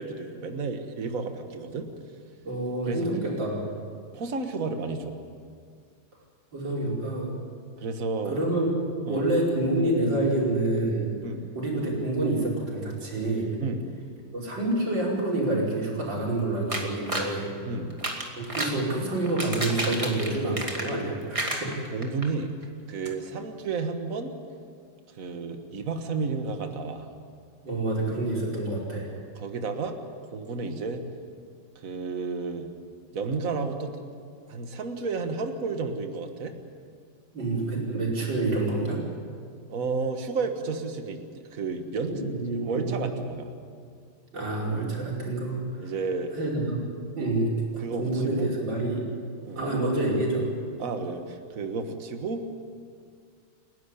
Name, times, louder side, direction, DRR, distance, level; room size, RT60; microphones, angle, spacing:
voice 1, 0.0-1.9 2.9-3.4 4.1-5.2 7.8-8.4 9.1-9.3 11.2-11.5 13.6-13.9 17.7-17.9 21.9-22.5 22.9-24.3 25.1-27.1 29.4-30.0 30.3-31.1 31.8-32.7 33.1-34.0 34.5-36.5 39.7-42.1 42.5-43.5 45.8-46.3 47.0-47.1 47.8-48.5 49.4-49.7 50.8-52.5, right 4 dB, 45° right, 6 dB, 1.9 m, -32 dB
voice 2, 2.4-3.6 6.5-7.4 8.3-8.7 9.1-11.1 11.6-13.6 14.3-17.5 18.4-21.7 27.6-29.1 37.3-39.0 42.1-43.0 44.3-45.9 46.3-46.9 47.2-49.1 49.6-50.5, right 2 dB, 65° right, -3 dB, 5.8 m, -27 dB
sound 1, 16.7-17.3 17.9-18.8 19.2-21.1 21.3-22.3 22.6-22.7 23.0-23.1, right 1 dB, 15° right, 2.4 m, -31 dB
29.0 x 12.0 x 10.0 m, 2.1 s
omnidirectional pair, 2.2 m